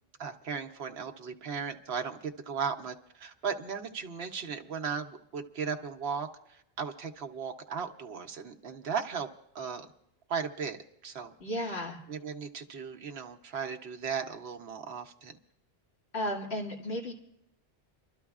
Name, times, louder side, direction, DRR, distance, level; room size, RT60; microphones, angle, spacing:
voice 1, 0.2-9.3 9.5-9.9 10.3-11.3 11.6-11.8 12.1-15.4, right 6 dB, 70° right, 4 dB, 1.1 m, -36 dB
voice 2, 11.4-12.0 16.1-17.1, equal, 75° left, -2 dB, 2.3 m, -34 dB
29.0 x 12.5 x 2.4 m, 0.80 s
omnidirectional pair, 1.1 m